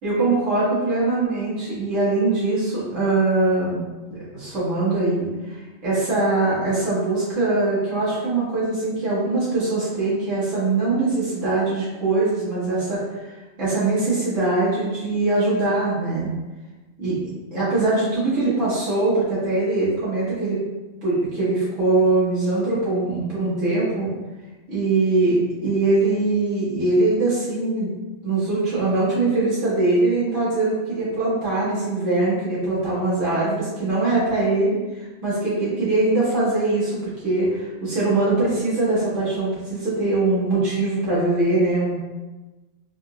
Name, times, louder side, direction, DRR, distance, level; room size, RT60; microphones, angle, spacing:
voice 1, 0.0-3.8 4.1-13.3 13.6-16.3 17.0-17.2 17.5-20.6 21.0-24.1 24.7-27.9 28.2-42.0, right 2 dB, 70° right, -10 dB, 2.0 m, -22 dB
4.6 x 2.7 x 2.9 m, 1.2 s
omnidirectional pair, 1.4 m